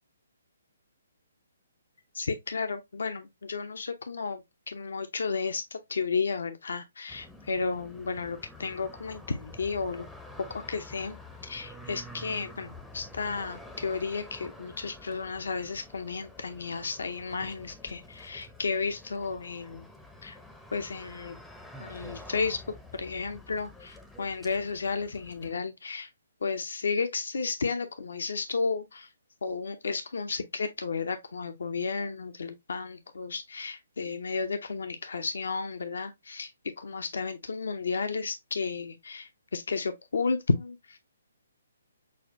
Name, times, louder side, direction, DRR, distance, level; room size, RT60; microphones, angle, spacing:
voice 1, 2.1-4.4 4.7-10.1 10.4-11.1 11.4-19.9 20.2-20.4 20.7-21.4 21.8-22.6 22.9-26.1 26.4-29.1 29.4-36.5 36.8-41.0, left 4 dB, 70° left, 0.6 m, -33 dB
sound 1, 7.1-25.5, left 1 dB, ahead, 0.6 m, -48 dB
6.3 x 2.3 x 2.5 m
figure-of-eight pair, 135°, 0 cm